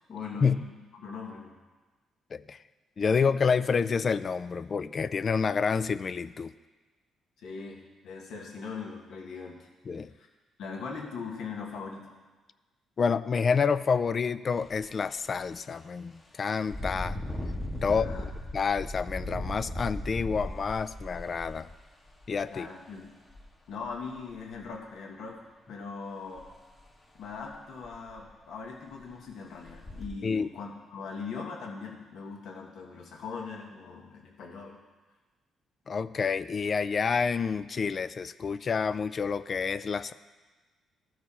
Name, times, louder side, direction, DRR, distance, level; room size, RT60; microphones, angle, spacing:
voice 1, 0.1-1.6 7.4-9.7 10.1-10.3 10.6-12.2 17.8-18.3 22.5-23.1 23.7-25.4 25.7-26.5 27.1-34.8, left 5 dB, 75° left, 0 dB, 1.5 m, -40 dB
voice 2, 3.0-6.5 9.9-10.1 13.0-17.2 17.8-21.7 22.3-22.7 30.2-30.5 35.9-40.1, left 5 dB, 45° left, 15 dB, 0.3 m, -28 dB
Engine, 14.6-14.8 15.3-15.4 16.6-22.4 23.3-23.4 23.8-24.6 26.4-26.5 26.9-27.0 27.4-27.5 27.8-28.3 28.9-29.0 29.6-30.1, left 1 dB, 25° left, 1.2 m, -37 dB
14.0 x 4.7 x 4.2 m, 1.3 s
cardioid pair, 90°, 0 cm